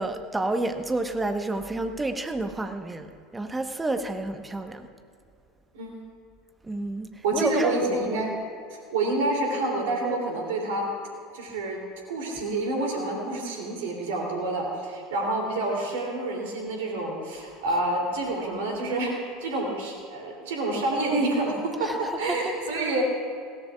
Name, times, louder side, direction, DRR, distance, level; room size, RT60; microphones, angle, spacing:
voice 1, 0.0-4.9 6.6-8.3 17.7-17.8 21.8-22.6, right 2 dB, 15° right, 7 dB, 1.1 m, -30 dB
voice 2, 7.2-8.3 8.7-10.9 11.3-11.8 12.1-23.0, right 2 dB, 70° right, -1 dB, 2.9 m, -28 dB
20.5 x 16.5 x 2.4 m, 2.3 s
figure-of-eight pair, 75°, 0 cm